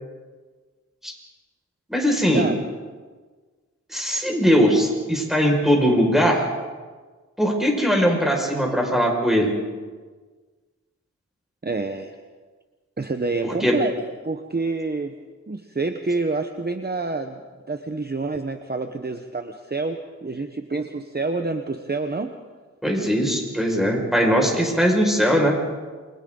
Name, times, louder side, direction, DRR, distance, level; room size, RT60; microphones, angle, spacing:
voice 1, 1.9-2.5 3.9-6.4 7.4-9.5 13.4-13.8 22.8-25.6, equal, ahead, 0 dB, 5.7 m, -20 dB
voice 2, 11.6-12.1 13.0-13.9 14.2-15.2 15.5-17.4 17.7-22.3, right 3 dB, 35° right, 6 dB, 1.1 m, -27 dB
29.5 x 23.0 x 3.9 m, 1.4 s
wide cardioid pair, 70°, 29 cm